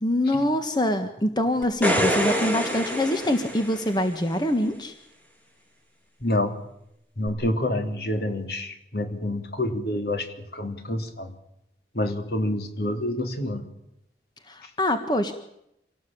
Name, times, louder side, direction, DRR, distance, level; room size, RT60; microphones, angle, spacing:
voice 1, 0.0-4.9 14.5-15.3, left 1 dB, 25° left, 7 dB, 1.5 m, -24 dB
sound 1, 1.6-4.2 7.3-7.4, equal, 10° left, 3.0 m, -26 dB
voice 2, 6.2-6.6 7.2-11.3 11.9-13.6 14.6-14.7, left 1 dB, 60° left, 6 dB, 3.0 m, -28 dB
26.5 x 18.0 x 8.7 m, 0.79 s
head